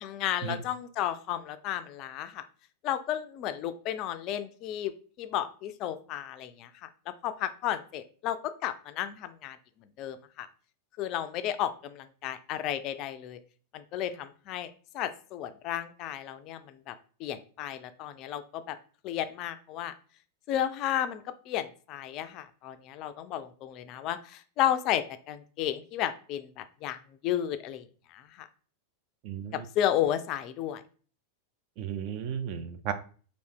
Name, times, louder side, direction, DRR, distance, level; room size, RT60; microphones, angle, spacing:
voice 1, 0.0-2.4 2.8-4.9 5.2-9.6 10.0-10.5 11.0-13.4 13.7-16.9 17.2-18.8 19.0-19.9 20.5-28.5 29.5-30.8, left 11 dB, 40° left, 10 dB, 0.3 m, -33 dB
voice 2, 29.2-29.6 31.8-32.9, right 8 dB, 45° right, 10 dB, 0.4 m, -34 dB
3.2 x 2.4 x 3.5 m, 0.41 s
figure-of-eight pair, 90°, 0 cm